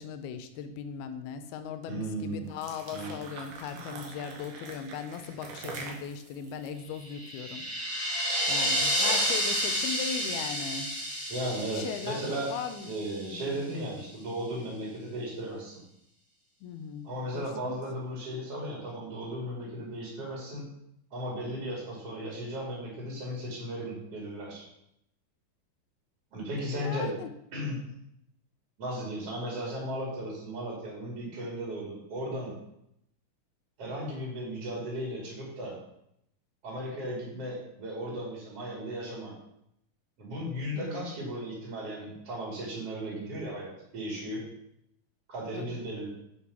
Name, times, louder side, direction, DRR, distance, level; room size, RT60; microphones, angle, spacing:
voice 1, 0.0-10.9 11.7-12.2 12.5-12.9 13.2-13.6 16.6-17.7 26.7-27.3 40.7-41.1 45.5-45.8, left 7 dB, 85° left, 8 dB, 2.6 m, -39 dB
voice 2, 1.9-2.5 2.9-3.2 3.7-3.9 11.3-12.5 12.9-15.8 17.0-20.7 21.1-24.6 26.3-27.1 27.5-27.8 28.8-32.5 33.8-35.8 36.6-39.3 40.2-44.4 45.3-46.1, right 1 dB, 40° right, -4 dB, 3.5 m, -36 dB
sound 1, 2.4-7.7, right 4 dB, 80° right, 3.4 m, -44 dB
sound 2, 7.0-13.2, equal, ahead, 2.2 m, -30 dB
9.8 x 5.0 x 6.0 m, 0.78 s
omnidirectional pair, 4.4 m